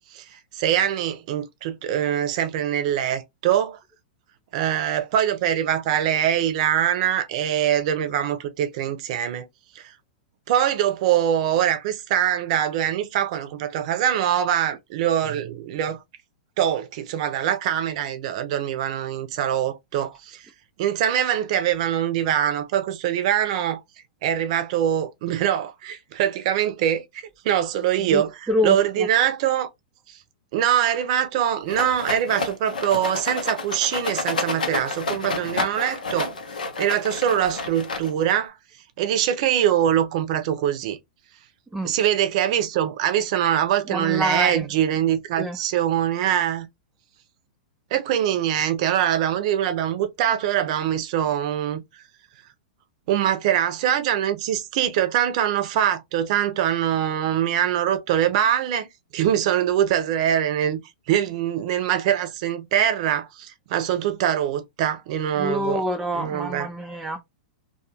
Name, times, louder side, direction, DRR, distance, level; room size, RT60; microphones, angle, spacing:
voice 1, 0.0-3.8 4.5-9.5 9.7-9.9 10.5-16.0 16.6-20.5 20.8-23.8 24.2-27.0 27.4-29.7 30.5-36.3 36.8-38.6 39.0-41.0 41.8-46.7 47.9-52.0 53.1-60.8 61.1-65.8 66.1-66.7, right 10 dB, 55° right, 0.6 m, -23 dB
voice 2, 28.5-29.1 41.7-41.9 43.9-44.7 45.4-45.6 65.4-67.2, equal, 5° right, 0.3 m, -26 dB
Rattle, 31.7-38.4, left 3 dB, 85° left, 0.7 m, -30 dB
2.3 x 2.3 x 2.8 m
hypercardioid pair, 115°, 4 cm